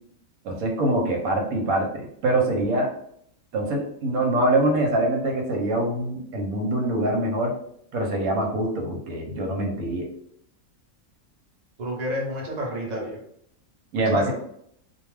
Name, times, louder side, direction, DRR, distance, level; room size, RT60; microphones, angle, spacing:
voice 1, 0.4-2.9 3.5-7.5 7.9-10.1 13.9-14.3, right 1 dB, 80° right, 1 dB, 1.1 m, -24 dB
voice 2, 11.8-13.2 14.1-14.3, equal, 40° right, -2 dB, 0.7 m, -30 dB
2.4 x 2.3 x 3.1 m, 0.71 s
omnidirectional pair, 1.5 m